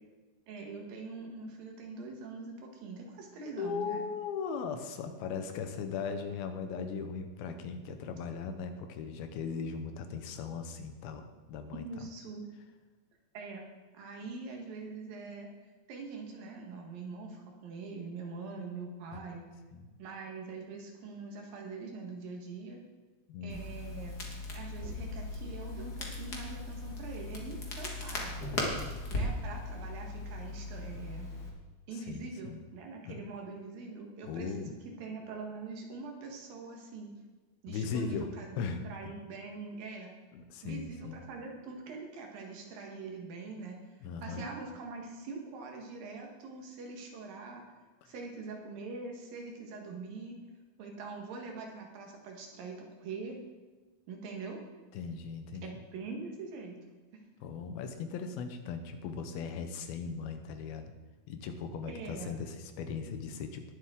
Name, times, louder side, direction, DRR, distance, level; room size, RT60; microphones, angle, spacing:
voice 1, 0.5-4.0 11.7-12.4 13.3-13.7 13.9-15.5 15.9-19.4 20.0-22.8 23.4-24.2 24.5-28.4 29.1-31.3 31.9-37.1 37.6-40.1 40.6-43.8 44.2-47.6 48.1-50.4 50.8-53.4 54.1-54.6 55.6-56.8 61.9-62.3, right 4 dB, 70° right, 1 dB, 3.1 m, -43 dB
voice 2, 3.4-11.2 11.5-11.8 19.1-19.4 19.7-19.9 23.3-23.6 31.9-32.6 33.1-33.2 34.2-34.8 37.7-38.9 40.3-41.2 44.0-44.4 54.9-55.7 57.4-60.9 61.3-63.6, left 5 dB, 80° left, 7 dB, 2.8 m, -38 dB
Crackle, 23.5-31.5, left 2 dB, 45° left, 1.3 m, -38 dB
sound 1, 24.8-27.3, left 2 dB, 85° right, 3.8 m, -47 dB
20.0 x 7.5 x 3.7 m, 1.3 s
omnidirectional pair, 4.4 m